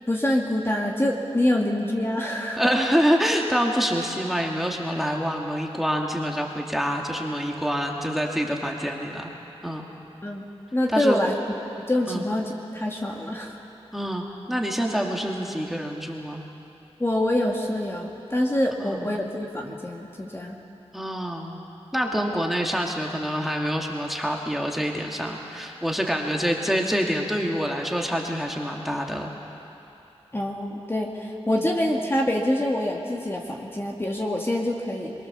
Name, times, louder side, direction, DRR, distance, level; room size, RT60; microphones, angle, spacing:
voice 1, 0.1-2.7 10.2-10.4 10.7-11.3 11.8-13.6 17.0-20.6 30.3-35.1, left 1 dB, 20° left, -1 dB, 2.1 m, -25 dB
voice 2, 2.6-9.3 9.6-9.9 10.9-11.2 12.1-12.3 13.9-16.5 18.8-19.2 20.9-21.6 21.9-29.3 31.5-31.7, equal, ahead, 0 dB, 2.4 m, -26 dB
23.0 x 23.0 x 7.0 m, 2.9 s
wide cardioid pair, 70°, 11 cm